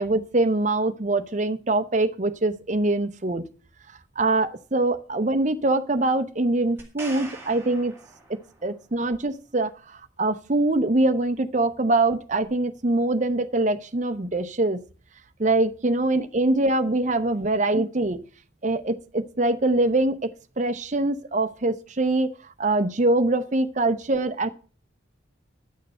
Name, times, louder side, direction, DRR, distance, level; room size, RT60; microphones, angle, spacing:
voice 1, 0.0-3.4 4.2-7.9 8.6-9.7 10.2-14.8 15.4-18.2 18.6-20.3 20.6-22.3 22.6-24.5, right 2 dB, 40° right, 0.7 m, -23 dB
sound 1, 6.8-8.8 12.4-12.5, right 2 dB, 10° right, 2.3 m, -42 dB
10.5 x 6.6 x 6.5 m
head